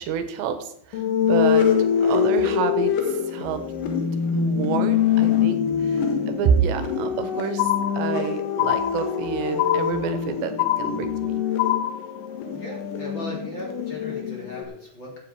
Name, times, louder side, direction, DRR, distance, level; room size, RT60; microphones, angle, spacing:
voice 1, 0.0-1.7 2.0-3.6 4.3-11.4, right 7 dB, 85° right, 8 dB, 3.3 m, -28 dB
sound 1, 0.9-14.6, left 8 dB, 60° left, 2.6 m, -24 dB
sound 2, 7.6-8.3 8.6-9.3 9.6-10.3 10.6-11.3 11.6-12.3, left 13 dB, 80° left, 3.2 m, -25 dB
voice 2, 12.4-15.2, left 1 dB, 30° left, -2 dB, 3.5 m, -38 dB
15.0 x 9.2 x 4.7 m, 0.68 s
omnidirectional pair, 5.1 m